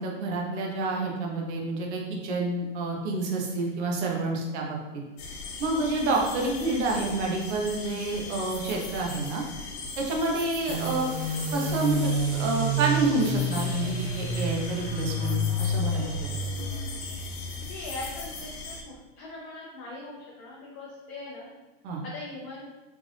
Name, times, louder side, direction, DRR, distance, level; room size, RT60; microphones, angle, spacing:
voice 1, 0.0-4.8 5.6-9.4 10.0-11.1 11.5-12.1 12.4-16.4 21.8-22.0, right 3 dB, 65° right, 0 dB, 1.0 m, -28 dB
sound 1, 5.2-18.8, left 3 dB, 60° left, 0.8 m, -39 dB
sound 2, 10.7-17.9, equal, 35° right, 0.8 m, -29 dB
voice 2, 17.7-21.5 22.0-22.7, left 2 dB, 30° left, -4 dB, 0.5 m, -41 dB
3.6 x 2.5 x 3.3 m, 1.1 s
supercardioid pair, 165°, 36 cm